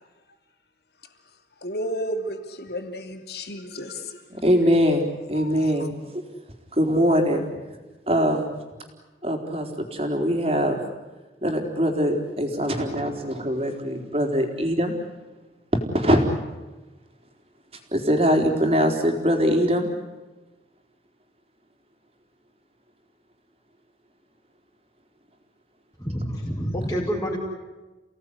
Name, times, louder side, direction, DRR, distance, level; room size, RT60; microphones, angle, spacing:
voice 1, 1.6-4.2 5.3-5.7, equal, 65° left, 6 dB, 2.9 m, -32 dB
voice 2, 4.3-6.2 6.8-7.5 8.1-8.6 9.2-10.8 11.4-14.9 15.9-16.2 17.9-19.9, equal, 35° right, 4 dB, 4.0 m, -22 dB
voice 3, 26.0-27.4, equal, 20° left, -3 dB, 5.0 m, -27 dB
30.0 x 18.0 x 9.9 m, 1.2 s
head